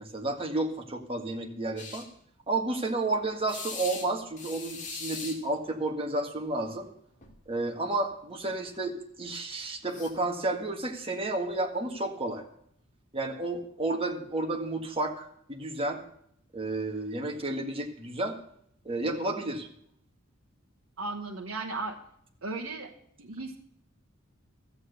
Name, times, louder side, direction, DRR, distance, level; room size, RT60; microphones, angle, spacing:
voice 1, 0.0-2.0 2.5-6.9 7.5-12.4 13.1-16.0 16.5-18.4 18.8-19.7, right 2 dB, 25° right, 2 dB, 1.8 m, -31 dB
sound 1, 1.8-2.0 3.5-4.1 4.4-5.4 6.7-6.9 7.2-7.4 9.9-10.1, left 5 dB, 40° left, 2.4 m, -40 dB
voice 2, 21.0-22.0 22.4-22.9 23.2-23.6, right 3 dB, 70° right, 0 dB, 1.2 m, -35 dB
13.0 x 8.2 x 6.7 m, 0.68 s
head